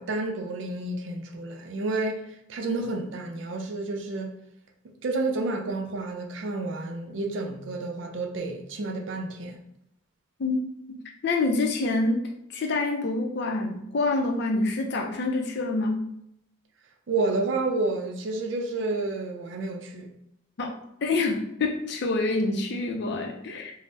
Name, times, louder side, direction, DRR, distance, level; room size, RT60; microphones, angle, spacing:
voice 1, 0.0-4.3 5.0-9.6 17.1-20.1, right 2 dB, 70° right, 0.4 m, -30 dB
voice 2, 10.9-12.2 12.5-16.1 20.6-23.7, left 3 dB, 60° left, 0.5 m, -27 dB
2.6 x 2.0 x 3.3 m
head